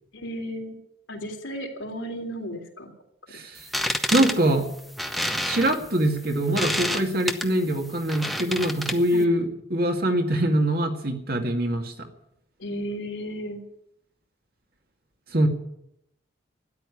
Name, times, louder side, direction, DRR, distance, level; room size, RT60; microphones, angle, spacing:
voice 1, 0.1-0.8 1.1-2.9 9.1-9.3 12.6-13.6, equal, 90° left, 1 dB, 3.3 m, -34 dB
voice 2, 3.3-3.6 4.1-4.7 5.5-11.9 15.3-15.5, right 1 dB, 50° right, 4 dB, 2.1 m, -23 dB
sound 1, 3.6-9.2, equal, ahead, 0.9 m, -29 dB
13.0 x 10.5 x 9.8 m, 0.78 s
head